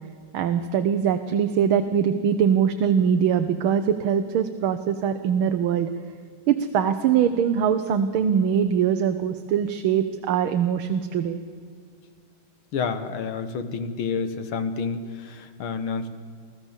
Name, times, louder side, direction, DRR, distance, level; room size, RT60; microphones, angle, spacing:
voice 1, 0.3-5.9 6.5-11.4, right 8 dB, 80° right, 8 dB, 1.7 m, -22 dB
voice 2, 12.7-16.1, left 5 dB, 80° left, 11 dB, 2.1 m, -29 dB
24.5 x 16.0 x 7.3 m, 2.2 s
omnidirectional pair, 2.2 m